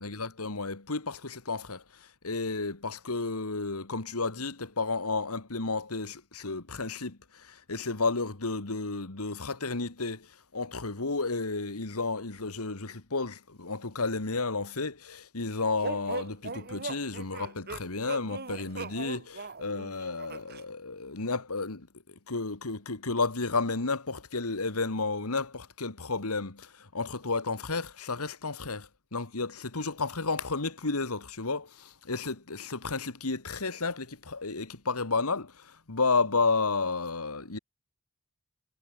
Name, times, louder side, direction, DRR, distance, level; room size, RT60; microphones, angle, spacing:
voice 1, 0.0-37.6, left 3 dB, 85° left, 2.0 m, -32 dB
sound 1, 15.8-20.6, right 3 dB, 45° right, 3.2 m, -39 dB
head